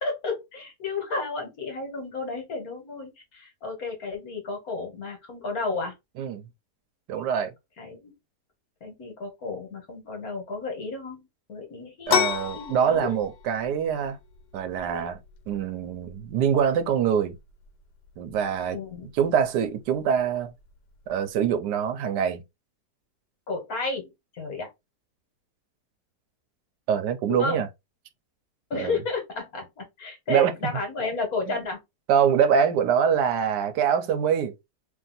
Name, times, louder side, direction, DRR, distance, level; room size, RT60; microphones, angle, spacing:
voice 1, 0.0-5.9 7.8-8.1 8.8-13.2 18.7-19.1 23.5-24.7 27.3-27.6 28.7-31.8, left 3 dB, 60° left, 1.8 m, -32 dB
voice 2, 7.1-7.5 12.1-14.2 14.5-15.2 15.5-17.4 18.2-18.8 19.1-20.5 21.1-22.4 26.9-27.7 28.7-29.0 30.3-30.5 32.1-34.5, right 8 dB, 85° right, 1.3 m, -24 dB
sound 1, 12.1-21.5, left 8 dB, 85° left, 1.4 m, -34 dB
3.2 x 2.7 x 3.9 m
omnidirectional pair, 1.7 m